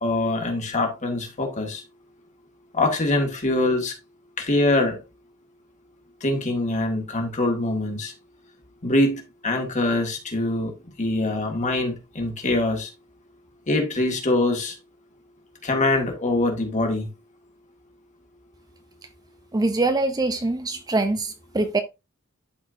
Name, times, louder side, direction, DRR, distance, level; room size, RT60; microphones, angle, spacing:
voice 1, 0.0-1.8 2.7-3.9 4.4-5.0 6.2-8.1 8.8-10.7 11.0-12.9 13.7-14.8 15.6-17.1, left 2 dB, 35° left, 1.8 m, -24 dB
voice 2, 19.5-21.8, right 2 dB, 20° right, 0.5 m, -23 dB
12.0 x 4.4 x 2.6 m
head